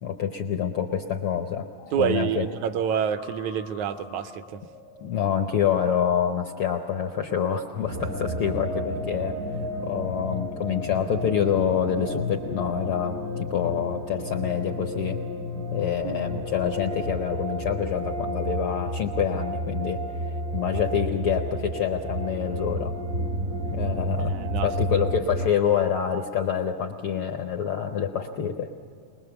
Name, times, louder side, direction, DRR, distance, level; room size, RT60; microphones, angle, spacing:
voice 1, 0.0-1.7 2.0-2.5 5.0-9.4 9.8-15.2 15.7-20.0 20.5-22.9 23.7-28.7, left 8 dB, 80° left, 5 dB, 1.2 m, -27 dB
sound 1, 1.8-5.7, left 4 dB, 55° left, 0.7 m, -48 dB
voice 2, 1.9-4.6 16.0-16.4 24.3-24.7, right 8 dB, 75° right, 11 dB, 1.9 m, -28 dB
sound 2, 7.8-25.5, equal, 60° right, 0.8 m, -31 dB
22.5 x 21.0 x 7.0 m, 2.3 s
omnidirectional pair, 3.5 m